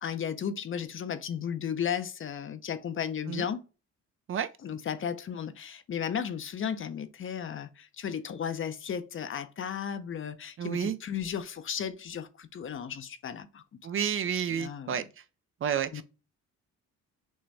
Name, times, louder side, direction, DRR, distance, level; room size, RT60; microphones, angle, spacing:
voice 1, 0.0-3.6 4.6-13.6 14.5-15.0 15.9-16.0, left 8 dB, 45° left, 0.6 m, -34 dB
voice 2, 10.6-11.0 13.8-15.0 15.6-16.0, right 8 dB, 45° right, 0.5 m, -30 dB
6.2 x 2.2 x 3.2 m
cardioid pair, 90°, 30 cm